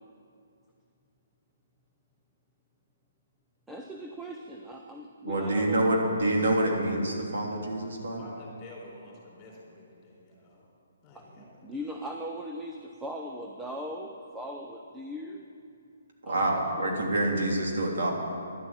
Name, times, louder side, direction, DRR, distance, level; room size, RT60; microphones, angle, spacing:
voice 1, 3.7-5.9 11.1-15.4 16.2-16.4 16.8-16.9, equal, 5° right, 1 dB, 0.6 m, -39 dB
voice 2, 5.2-8.2 16.3-18.1, right 1 dB, 70° right, -1 dB, 3.3 m, -27 dB
voice 3, 8.2-10.7 11.0-11.6, left 2 dB, 20° left, -3 dB, 3.9 m, -49 dB
12.0 x 11.5 x 8.8 m, 2.4 s
hypercardioid pair, 170°, 0 cm